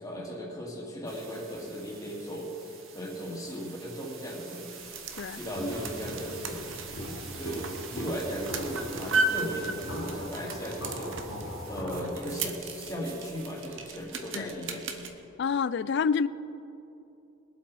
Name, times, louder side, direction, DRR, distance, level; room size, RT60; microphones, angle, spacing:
voice 1, 0.0-4.7 5.3-6.6 7.3-7.7 7.9-11.4 11.7-14.8, equal, 15° left, -2 dB, 2.1 m, -37 dB
sound 1, 1.0-11.8, right 6 dB, 80° right, 1.8 m, -46 dB
sound 2, 4.7-15.1, right 3 dB, 65° right, 1.0 m, -36 dB
Walk footsteps, 5.6-12.2, equal, 90° left, 2.8 m, -39 dB
voice 2, 15.4-16.3, left 6 dB, 55° left, 17 dB, 0.3 m, -27 dB
21.0 x 8.0 x 4.8 m, 2.9 s
head